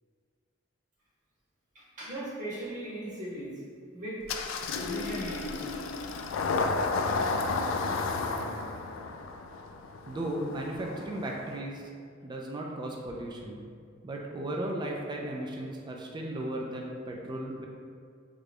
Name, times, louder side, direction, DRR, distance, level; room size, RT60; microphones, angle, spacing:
voice 1, 1.7-3.5 3.9-4.2 4.8-5.7, equal, 40° right, -8 dB, 1.0 m, -37 dB
Engine starting, 4.3-11.6, left 3 dB, 80° left, 0.3 m, -32 dB
voice 2, 10.1-11.8 12.2-13.6 14.0-17.7, right 1 dB, 20° right, -1 dB, 0.3 m, -35 dB
3.6 x 2.2 x 3.4 m, 2.1 s
head